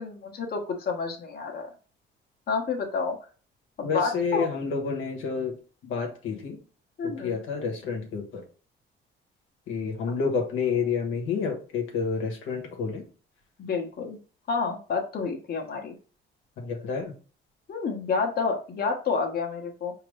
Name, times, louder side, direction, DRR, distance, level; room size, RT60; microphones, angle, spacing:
voice 1, 0.0-1.7 2.5-3.2 3.8-4.5 7.0-7.3 13.6-14.2 14.5-15.9 17.7-19.9, left 5 dB, 50° left, 1 dB, 1.1 m, -29 dB
voice 2, 3.8-5.5 5.8-6.6 7.0-8.4 9.7-13.0 16.6-17.1, left 5 dB, 85° left, 2 dB, 1.2 m, -29 dB
5.1 x 2.9 x 3.2 m, 0.38 s
cardioid pair, 90°, 20 cm